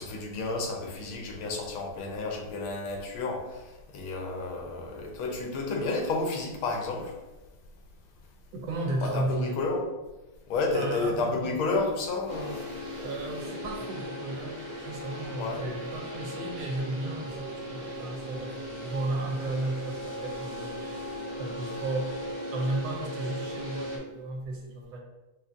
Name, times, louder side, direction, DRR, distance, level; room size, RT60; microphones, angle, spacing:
voice 1, 0.0-3.6 3.9-7.1 9.0-9.8 10.5-12.7 15.4-15.6, left 3 dB, 85° left, 1 dB, 1.5 m, -31 dB
voice 2, 8.5-9.6 10.7-11.9 13.0-21.0 21.4-22.1 22.5-25.0, right 2 dB, 75° right, 0 dB, 1.2 m, -34 dB
sound 1, 12.3-24.0, equal, 50° right, 0.8 m, -38 dB
4.7 x 2.4 x 2.5 m, 1.1 s
omnidirectional pair, 2.3 m